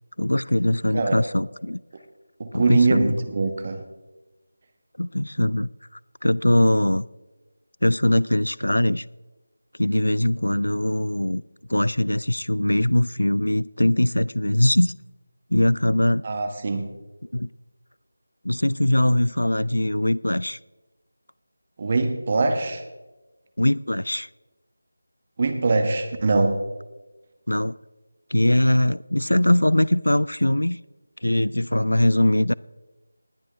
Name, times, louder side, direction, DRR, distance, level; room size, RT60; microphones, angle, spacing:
voice 1, 0.2-1.8 2.5-3.1 5.0-5.7 6.2-7.1 7.8-9.0 9.8-11.4 11.7-14.9 15.5-16.3 17.3-17.5 18.4-20.6 23.6-24.3 27.5-27.8 28.3-30.8 31.2-32.5, left 1 dB, 75° left, 0.4 m, -21 dB
voice 2, 2.4-3.8 16.2-16.9 21.8-22.8 25.4-26.6, right 3 dB, 30° right, 1.2 m, -22 dB
19.5 x 11.0 x 3.4 m
figure-of-eight pair, 165°, 0 cm